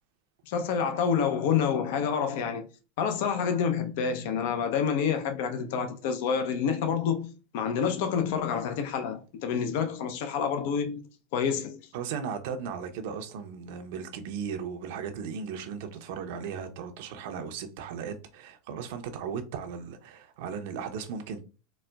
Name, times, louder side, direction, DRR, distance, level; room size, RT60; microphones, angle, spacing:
voice 1, 0.5-2.7 3.0-11.1 11.3-11.8, left 7 dB, 65° left, 0.5 m, -28 dB
voice 2, 11.9-21.4, right 6 dB, 70° right, 0.6 m, -36 dB
4.0 x 2.1 x 2.2 m
supercardioid pair, 110°, 0 cm